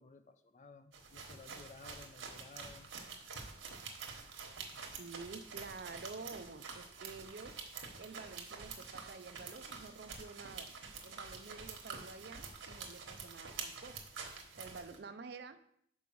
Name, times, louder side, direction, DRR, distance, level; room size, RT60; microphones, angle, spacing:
voice 1, 0.0-2.9, left 3 dB, 35° left, 9 dB, 0.4 m, -56 dB
sound 1, 0.9-15.0, right 5 dB, 85° right, 1.2 m, -47 dB
voice 2, 4.7-7.6 8.0-10.7 11.0-14.0 14.5-15.6, right 4 dB, 55° right, 10 dB, 0.5 m, -50 dB
5.4 x 4.6 x 6.1 m, 0.69 s
head